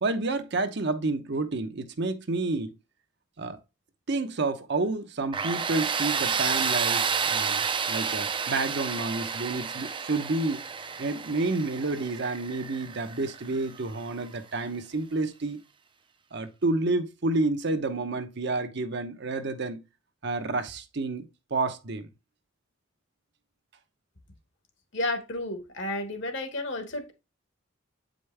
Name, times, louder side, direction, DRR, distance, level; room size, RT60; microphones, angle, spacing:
voice 1, 0.0-2.7 3.4-3.6 4.1-10.6 11.0-15.6 16.3-19.8 20.2-22.1, right 3 dB, 60° right, 0.8 m, -29 dB
Tools, 5.3-14.1, right 6 dB, 25° right, 0.5 m, -30 dB
voice 2, 24.9-27.1, left 1 dB, 70° left, 1.6 m, -32 dB
7.9 x 5.1 x 3.3 m
head